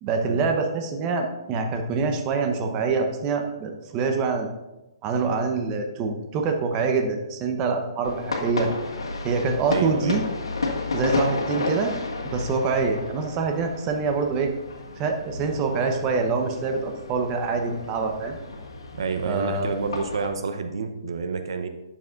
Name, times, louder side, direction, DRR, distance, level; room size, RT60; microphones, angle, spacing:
voice 1, 0.0-4.5 5.0-8.7 9.2-10.2 10.9-11.9 12.3-14.5 15.0-18.4 19.2-19.8, right 4 dB, 25° right, 4 dB, 0.9 m, -25 dB
sound 1, 8.0-20.3, left 3 dB, 90° left, 1.6 m, -32 dB
voice 2, 9.7-10.2 18.9-21.7, right 4 dB, 70° right, 7 dB, 0.8 m, -28 dB
10.5 x 7.1 x 2.5 m, 1.0 s
hypercardioid pair, 150°, 3 cm